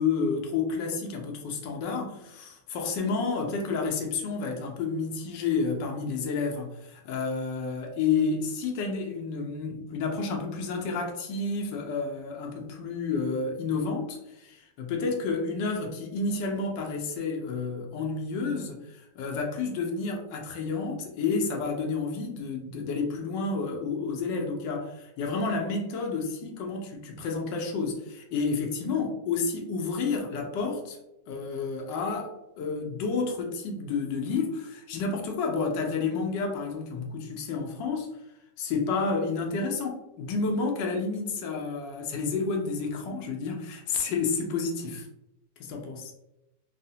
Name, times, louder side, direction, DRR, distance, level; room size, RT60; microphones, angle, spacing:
voice 1, 0.0-31.0 31.3-38.1 38.6-45.1 45.6-46.1, left 4 dB, 85° left, 1 dB, 1.3 m, -30 dB
3.7 x 2.0 x 2.7 m, 0.91 s
omnidirectional pair, 1.9 m